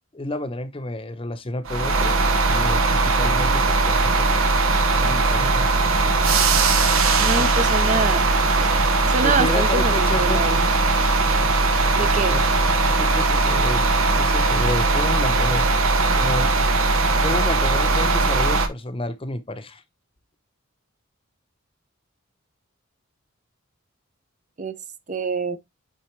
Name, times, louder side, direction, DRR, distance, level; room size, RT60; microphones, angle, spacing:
voice 1, 0.1-4.5 5.0-5.7 7.4-7.6 8.9-10.4 12.0-12.4 12.8-13.9 14.2-16.5 17.2-19.8, left 1 dB, 25° left, 0.8 m, -30 dB
sound 1, 1.7-18.7, right 3 dB, 80° right, 1.1 m, -19 dB
voice 2, 7.2-8.2 9.1-10.7 11.9-12.3 24.6-24.7 25.1-25.6, right 3 dB, 35° right, 0.7 m, -25 dB
9.1 x 4.0 x 3.2 m
head